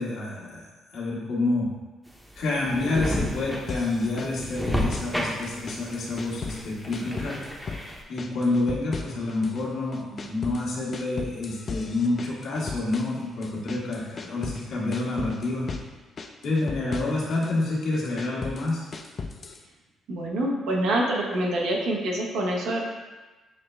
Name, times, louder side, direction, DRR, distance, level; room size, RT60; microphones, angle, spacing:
voice 1, 0.0-1.7 2.4-7.7 8.1-15.7 16.4-18.9, left 2 dB, 75° left, -5 dB, 1.2 m, -28 dB
sound 1, 2.1-8.0, equal, 5° right, 0.7 m, -32 dB
sound 2, 3.7-5.2 5.4-6.7 6.9-7.9 8.2-9.6 9.9-14.6 14.9-15.9 16.2-17.5 17.9-19.6, left 4 dB, 40° left, 0.3 m, -37 dB
voice 2, 20.1-22.9, right 1 dB, 85° right, -1 dB, 0.8 m, -26 dB
6.3 x 2.3 x 3.2 m, 1.2 s
cardioid pair, 90°, 0 cm